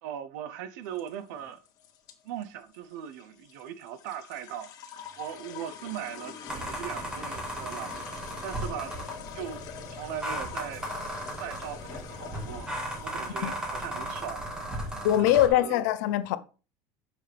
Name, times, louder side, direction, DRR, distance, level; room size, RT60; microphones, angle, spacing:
voice 1, 0.0-1.6 2.2-4.7 5.2-9.0 9.3-10.9 11.4-12.7 13.0-15.8, right 10 dB, 80° right, 0.9 m, -39 dB
sound 1, 0.8-15.4, left 9 dB, 45° left, 1.6 m, -45 dB
sound 2, 6.5-15.5, right 1 dB, 10° right, 2.2 m, -36 dB
voice 2, 15.0-16.4, left 12 dB, 80° left, 0.8 m, -23 dB
9.7 x 6.4 x 3.5 m
cardioid pair, 165°, 9 cm